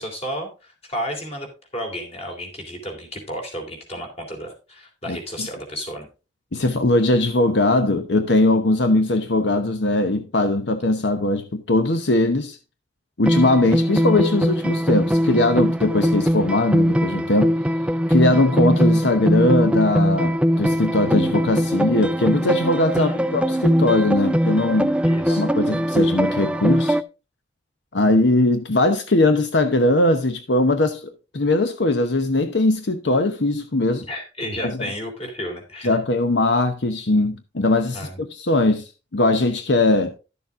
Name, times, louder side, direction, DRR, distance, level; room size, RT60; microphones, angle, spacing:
voice 1, 0.0-1.5 1.7-6.1 23.0-23.3 25.0-25.4 34.1-36.0 37.9-38.2, equal, 35° left, 3.3 m, -32 dB
voice 2, 5.1-5.5 6.5-12.6 13.2-17.5 18.1-24.9 25.4-27.0 27.9-31.0 31.3-34.1 34.6-34.8 35.8-40.2, left 2 dB, 80° left, 0.9 m, -20 dB
sound 1, 13.3-27.0, equal, 5° right, 0.4 m, -21 dB
12.0 x 7.0 x 3.7 m
head